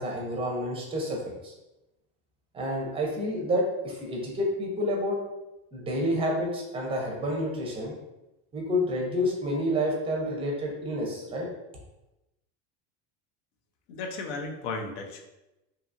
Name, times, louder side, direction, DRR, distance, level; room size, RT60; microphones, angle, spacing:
voice 1, 0.0-1.5 2.5-5.2 5.7-7.9 8.5-11.5, equal, 15° right, 0 dB, 0.5 m, -29 dB
voice 2, 13.9-15.2, left 3 dB, 80° left, 3 dB, 0.6 m, -34 dB
2.8 x 2.3 x 2.5 m, 0.96 s
cardioid pair, 150°, 33 cm